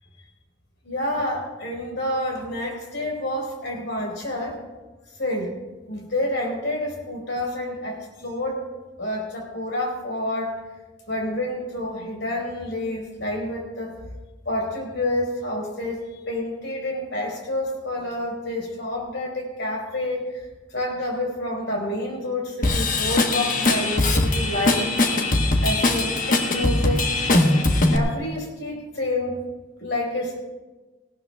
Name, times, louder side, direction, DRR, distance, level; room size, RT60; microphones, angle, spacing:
voice 1, 0.8-4.6 5.2-5.6 5.9-8.6 9.0-10.6 11.1-14.0 14.4-24.9 25.6-27.1 27.9-29.4 29.8-30.4, left 1 dB, 85° left, -1 dB, 4.5 m, -28 dB
Drum kit / Drum, 22.6-28.0, left 2 dB, 50° left, 1.2 m, -21 dB
19.0 x 18.0 x 2.4 m, 1.2 s
head